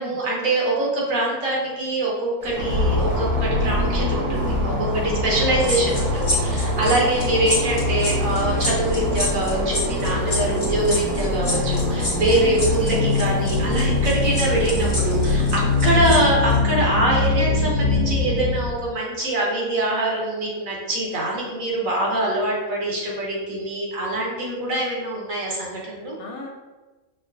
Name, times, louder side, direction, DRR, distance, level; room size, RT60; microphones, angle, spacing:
voice 1, 0.0-26.2, right 1 dB, 60° right, -3 dB, 1.4 m, -24 dB
sound 1, 2.4-16.2, equal, 35° right, 1.0 m, -36 dB
sound 2, 2.5-18.7, left 2 dB, 85° right, 1.8 m, -23 dB
voice 2, 4.9-5.5 6.8-7.2 12.4-12.7 26.2-26.5, left 2 dB, 75° left, 1 dB, 1.1 m, -36 dB
sound 3, 5.6-16.2 16.5-16.7, left 1 dB, 30° left, 0.7 m, -28 dB
5.5 x 2.0 x 3.7 m, 1.2 s
omnidirectional pair, 1.6 m